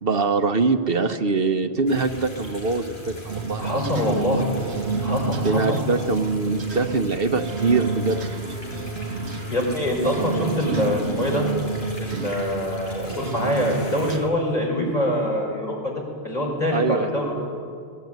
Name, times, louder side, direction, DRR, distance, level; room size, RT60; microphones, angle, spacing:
voice 1, 0.0-4.0 5.4-8.2 16.7-17.1, right 4 dB, 60° right, 7 dB, 1.2 m, -23 dB
sound 1, 1.9-14.2, left 1 dB, 70° left, 6.5 m, -39 dB
sound 2, 3.3-14.3, right 3 dB, 85° right, 1.3 m, -30 dB
voice 2, 3.6-4.5 5.0-5.8 9.5-11.5 12.0-15.9 16.2-17.3, equal, 40° left, -2 dB, 5.9 m, -24 dB
24.5 x 19.0 x 9.4 m, 2.3 s
omnidirectional pair, 1.1 m